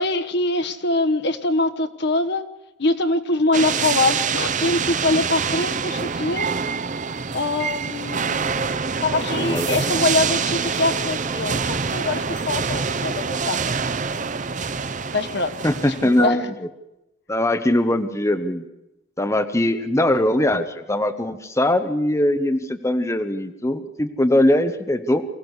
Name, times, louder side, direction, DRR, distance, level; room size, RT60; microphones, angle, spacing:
voice 1, 0.0-2.4 2.8-6.5 7.3-8.6 9.0-13.6 15.1-15.5 15.9-16.5, left 2 dB, 65° left, 8 dB, 1.2 m, -23 dB
sound 1, 3.5-16.2, right 5 dB, 45° right, 0.8 m, -25 dB
voice 2, 9.1-9.8 15.6-16.4 17.3-18.6 19.2-25.3, left 1 dB, 15° left, 7 dB, 1.1 m, -21 dB
23.5 x 15.5 x 8.2 m, 0.95 s
head